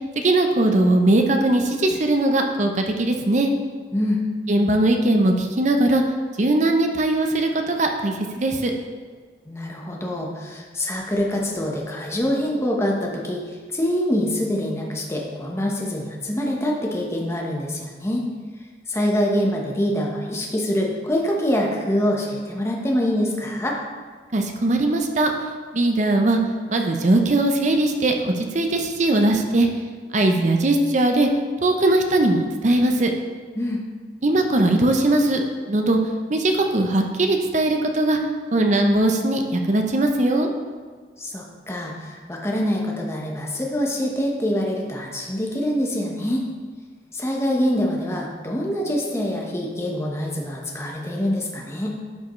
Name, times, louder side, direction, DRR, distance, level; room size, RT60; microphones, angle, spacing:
voice 1, 0.2-3.5 4.5-6.0 6.4-8.7 24.3-25.3 25.7-26.4 26.7-29.7 30.1-31.3 31.6-33.1 34.2-35.4 35.7-36.0 36.3-38.2 38.5-40.5, right 2 dB, 40° right, 4 dB, 0.6 m, -20 dB
voice 2, 9.4-18.3 18.9-23.8 33.6-33.8 41.2-46.4 47.1-52.0, equal, 15° left, -1 dB, 1.0 m, -25 dB
11.5 x 4.8 x 3.1 m, 1.5 s
head